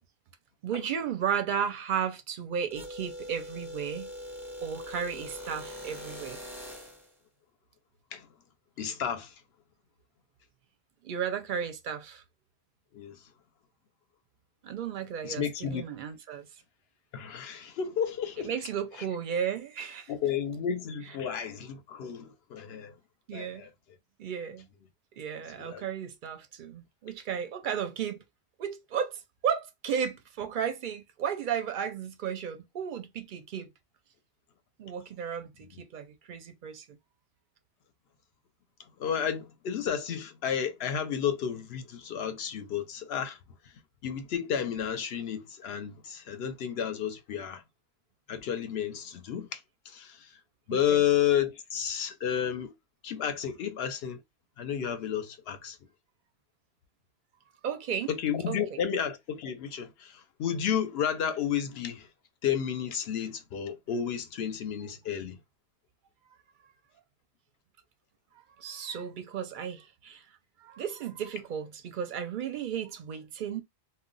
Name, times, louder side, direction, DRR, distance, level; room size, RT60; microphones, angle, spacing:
voice 1, 0.6-4.1 4.6-6.4 11.0-12.2 14.6-16.5 18.4-20.1 23.3-23.7 24.2-24.7 25.2-28.2 28.6-33.7 34.8-37.0 50.7-51.0 57.6-58.1 58.5-58.8 68.3-70.2 70.6-73.6, right 8 dB, 60° right, 0.6 m, -34 dB
sound 1, 2.7-7.1, left 1 dB, ahead, 0.6 m, -42 dB
voice 2, 8.8-9.3 12.9-13.2 15.2-15.8 17.1-18.5 20.1-22.9 23.3-23.7 25.6-25.8 39.0-43.4 44.0-47.6 48.3-49.6 49.9-50.3 50.7-52.7 53.0-54.2 54.6-55.8 58.1-62.1 62.4-65.4, left 8 dB, 65° left, 0.8 m, -31 dB
2.2 x 2.1 x 3.7 m
omnidirectional pair, 1.2 m